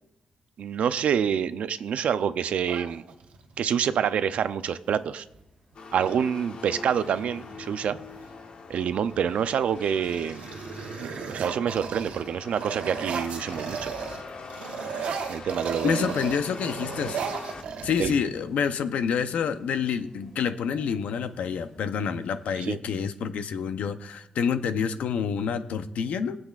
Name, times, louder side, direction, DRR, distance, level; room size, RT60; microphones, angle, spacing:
voice 1, 0.6-3.0 3.6-5.2 5.9-8.0 8.7-10.5 11.0-13.9 15.3-16.0 18.0-18.1 22.7-22.8, right 8 dB, 70° right, 12 dB, 0.5 m, -27 dB
sound 1, 2.6-3.6 5.3-5.4 5.7-6.2 6.8-8.3 8.9-9.3 9.7-14.2 14.5-18.4, right 6 dB, 90° right, 1.2 m, -36 dB
sound 2, 3.0-22.7, equal, 15° left, 3.2 m, -55 dB
sound 3, 5.7-17.6, left 4 dB, 50° left, 1.0 m, -43 dB
voice 2, 15.8-17.2 17.8-26.4, left 7 dB, 85° left, 10 dB, 0.7 m, -28 dB
23.0 x 7.9 x 2.5 m, 0.85 s
wide cardioid pair, 135°, 2 cm